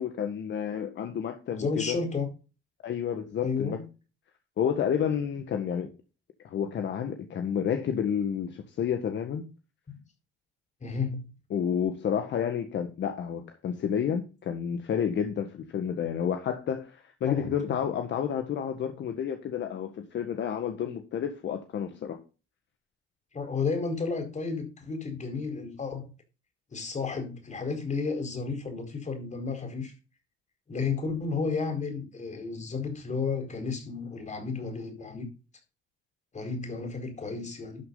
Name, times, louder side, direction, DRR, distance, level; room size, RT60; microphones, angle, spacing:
voice 1, 0.0-1.9 2.8-3.8 4.6-5.9 6.4-9.5 11.5-22.2, left 8 dB, 65° left, 1.6 m, -30 dB
voice 2, 1.5-2.3 3.4-3.8 9.9-10.0 10.8-11.3 17.2-17.5 23.3-26.1 26.7-29.9 30.7-35.3 36.3-37.8, left 4 dB, 35° left, 4.6 m, -32 dB
12.0 x 6.4 x 3.9 m
cardioid pair, 90°, 20 cm